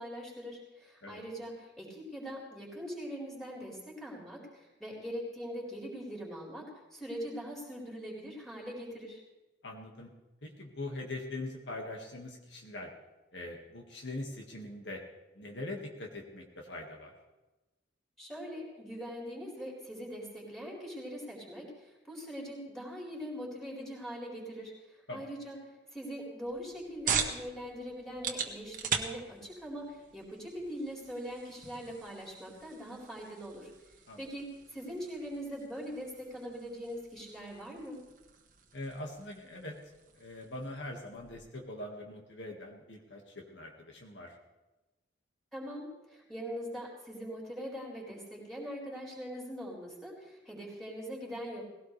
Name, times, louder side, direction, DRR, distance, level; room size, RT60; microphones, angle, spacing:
voice 1, 0.0-9.2 18.2-38.0 45.5-51.6, equal, ahead, -4 dB, 4.4 m, -42 dB
voice 2, 9.6-10.1 10.4-12.9 13.3-15.0 15.3-17.1 25.1-25.3 34.1-34.2 38.7-39.8 40.1-44.4, left 2 dB, 70° left, 1 dB, 2.0 m, -42 dB
sound 1, 26.4-41.6, right 6 dB, 45° right, 1.4 m, -41 dB
19.0 x 17.0 x 3.4 m, 1.1 s
head